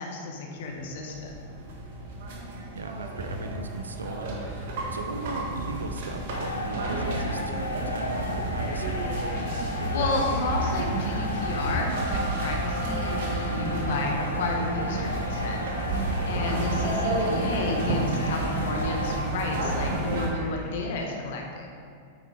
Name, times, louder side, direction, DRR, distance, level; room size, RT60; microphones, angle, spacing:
voice 1, 0.0-1.3 9.9-15.6 16.3-21.7, left 3 dB, 55° left, 1 dB, 1.4 m, -31 dB
sound 1, 0.6-20.3, right 2 dB, 55° right, 1.6 m, -30 dB
voice 2, 2.7-4.4 4.9-9.0 16.9-17.2, right 3 dB, 75° right, 7 dB, 0.6 m, -38 dB
sound 2, 6.3-19.2, left 2 dB, 80° left, 0.7 m, -35 dB
sound 3, 8.5-20.8, left 4 dB, 30° left, 0.9 m, -49 dB
8.8 x 7.9 x 3.5 m, 2.3 s
figure-of-eight pair, 95°, 0 cm